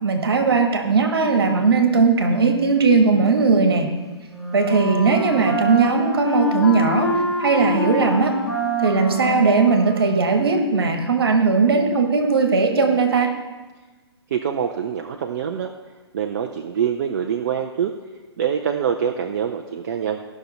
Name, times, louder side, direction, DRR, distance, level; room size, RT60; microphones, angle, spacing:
voice 1, 0.0-3.9 4.5-7.1 7.4-8.4 8.8-13.3, right 4 dB, 60° right, 5 dB, 1.6 m, -18 dB
Wind instrument woodwind instrument, 4.2-10.3, right 1 dB, 45° left, 3.6 m, -26 dB
voice 2, 14.3-15.7 16.1-17.9 18.4-20.2, right 8 dB, 45° right, 4 dB, 0.6 m, -25 dB
15.5 x 6.0 x 4.2 m, 1.3 s
figure-of-eight pair, 125°, 14 cm